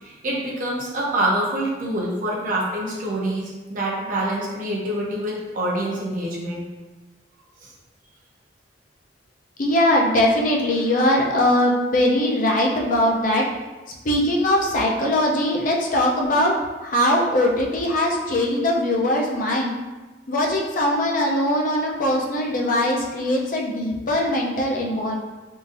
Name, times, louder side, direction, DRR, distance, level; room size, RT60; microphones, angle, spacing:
voice 1, 0.0-6.6 7.6-7.7, right 1 dB, 45° right, -4 dB, 0.6 m, -26 dB
voice 2, 9.6-13.4 14.0-16.5 16.8-19.8 20.3-25.1, left 1 dB, 45° left, -1 dB, 0.5 m, -21 dB
3.7 x 2.6 x 2.5 m, 1.2 s
head